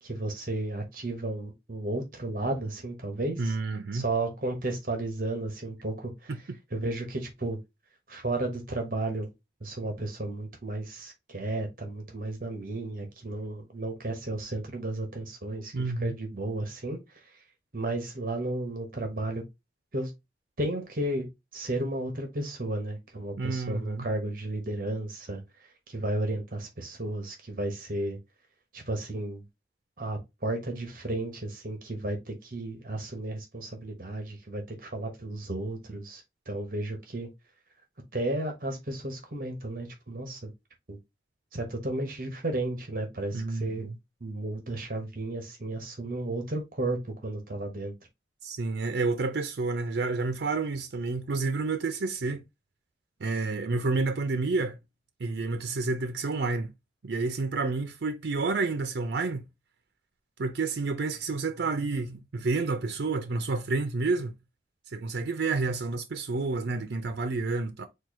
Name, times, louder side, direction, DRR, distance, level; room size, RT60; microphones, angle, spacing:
voice 1, 0.0-3.5 3.9-6.3 6.7-7.6 8.1-9.3 9.6-15.7 16.0-17.4 17.7-19.4 19.9-20.1 20.6-21.3 21.5-25.4 25.9-28.2 28.7-29.4 30.0-37.3 38.1-40.5 40.9-41.0 41.5-43.9 44.2-47.9, right 2 dB, 50° right, 1.1 m, -33 dB
voice 2, 3.4-4.1 6.3-6.4 15.7-16.1 23.4-24.1 43.3-44.0 48.4-52.4 53.2-54.8 55.2-56.7 57.0-59.4 60.4-64.3 64.9-67.9, right 3 dB, 75° right, 0.5 m, -29 dB
4.5 x 2.4 x 4.6 m
head